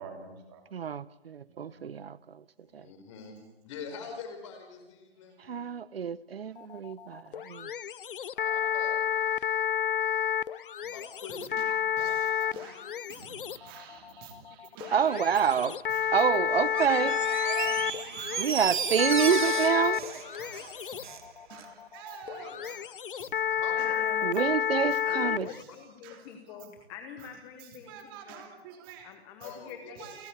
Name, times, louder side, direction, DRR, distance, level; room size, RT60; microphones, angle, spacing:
voice 1, 0.0-0.6 1.5-1.7 5.5-5.8 11.6-16.4 16.9-18.6 19.3-19.5 20.4-21.0 21.5-22.8 23.1-23.3 23.7-23.9 24.3-24.4 24.9-25.1 25.5-25.6 26.0-26.2 26.5-26.6 27.2-27.3 27.9-29.1 29.4-29.5 30.0-30.3, right 7 dB, 20° right, 3.1 m, -48 dB
voice 2, 0.7-2.2 2.7-2.9 5.5-7.7 14.9-15.7 16.1-17.2 18.4-20.0 24.2-25.5, right 7 dB, 70° right, 0.8 m, -27 dB
voice 3, 2.6-5.4 8.3-9.7 10.0-10.4 10.8-11.5 12.0-13.0 17.0-17.3 18.1-18.2 19.6-19.8 20.3-20.6 22.3-22.8 23.2-24.0 25.1-25.2 25.7-25.8 26.1-26.2 29.4-29.7 30.0-30.1, left 5 dB, 30° left, 4.5 m, -46 dB
sound 1, 6.6-25.6, left 9 dB, 55° left, 0.6 m, -31 dB
Door, 16.7-21.3 21.6-21.7, right 7 dB, 50° right, 2.0 m, -34 dB
voice 4, 23.7-24.2 25.0-25.4 25.7-28.5 29.0-30.2, left 8 dB, 10° left, 1.0 m, -45 dB
29.5 x 12.0 x 8.5 m
hypercardioid pair, 165°, 31 cm